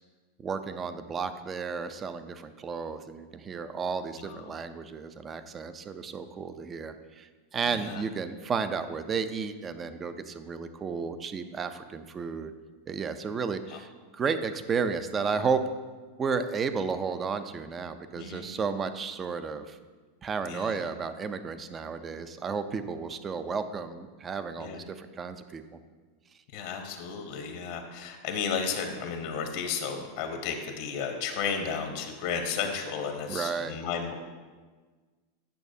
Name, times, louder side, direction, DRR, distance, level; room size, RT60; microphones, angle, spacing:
voice 1, 0.4-12.5 12.9-15.6 16.2-19.8 20.2-25.6 33.3-33.8, right 5 dB, 25° right, 10 dB, 0.5 m, -33 dB
voice 2, 4.2-4.5 7.7-8.0 13.7-13.8 18.2-18.5 20.5-20.8 24.6-24.8 26.5-34.1, left 6 dB, 65° left, 4 dB, 0.9 m, -33 dB
9.2 x 6.1 x 2.7 m, 1.4 s
hypercardioid pair, 105°, 0 cm